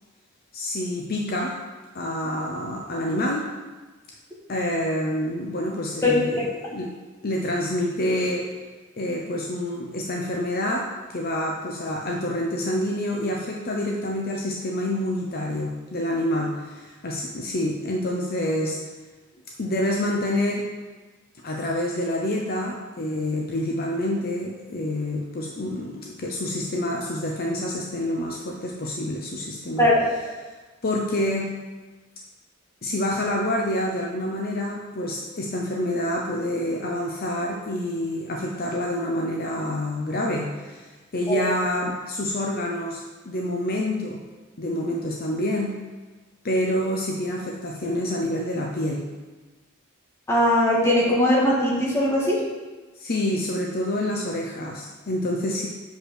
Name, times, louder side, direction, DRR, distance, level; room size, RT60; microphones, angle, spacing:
voice 1, 0.5-1.6 1.9-3.5 4.5-6.9 7.2-8.5 9.0-18.8 19.6-20.7 21.4-29.9 30.8-31.5 32.8-44.2 44.6-45.8 46.4-49.1 53.0-55.7, left 1 dB, 45° left, 0 dB, 0.7 m, -27 dB
voice 2, 50.3-52.4, left 1 dB, 15° left, -6 dB, 2.0 m, -20 dB
6.4 x 5.2 x 6.4 m, 1.3 s
head